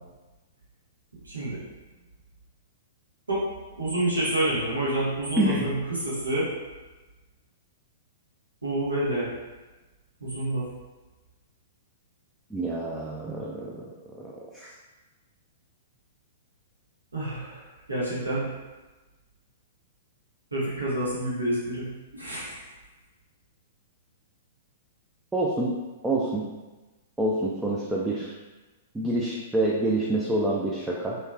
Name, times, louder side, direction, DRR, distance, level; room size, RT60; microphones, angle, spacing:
voice 1, 1.2-1.6 3.3-3.4 3.8-6.5 8.6-9.3 10.2-10.7 17.1-17.6 17.9-18.5 20.5-22.6, right 1 dB, 85° right, -8 dB, 1.1 m, -28 dB
voice 2, 5.4-5.7 12.5-14.7 25.3-25.7 26.0-26.5 27.2-28.3 28.9-31.2, right 1 dB, 10° right, -5 dB, 0.4 m, -27 dB
3.2 x 2.9 x 2.3 m, 1.2 s
figure-of-eight pair, 110°, 0 cm